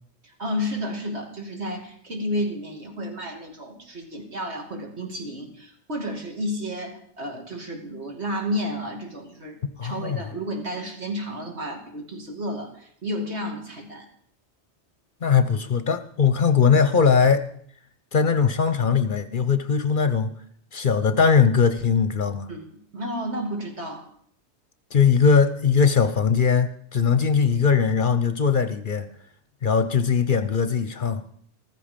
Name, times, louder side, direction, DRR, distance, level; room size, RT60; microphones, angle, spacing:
voice 1, 0.4-14.0 22.5-22.7 22.9-24.1, equal, 70° right, 2 dB, 2.8 m, -31 dB
voice 2, 9.8-10.2 15.2-17.5 18.1-20.3 20.7-22.5 24.9-29.1 29.6-31.2, left 6 dB, 50° left, 12 dB, 0.9 m, -20 dB
14.0 x 14.0 x 5.2 m, 0.64 s
omnidirectional pair, 1.2 m